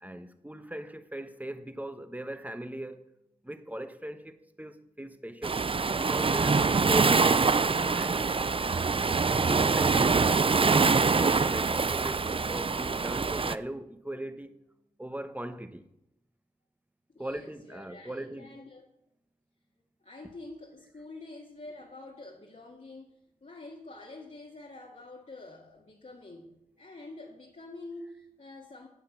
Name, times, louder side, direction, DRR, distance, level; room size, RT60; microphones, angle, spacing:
voice 1, 0.0-3.1 3.4-5.6 6.0-7.3 7.9-8.2 9.0-14.6 15.0-15.9 17.2-18.6, right 1 dB, 10° right, 1.1 m, -39 dB
Waves surf, 5.4-13.6, right 4 dB, 40° right, 0.5 m, -24 dB
voice 2, 17.1-18.9 20.0-28.9, left 2 dB, 55° left, 1.9 m, -47 dB
9.5 x 8.6 x 7.3 m
wide cardioid pair, 60°, 15 cm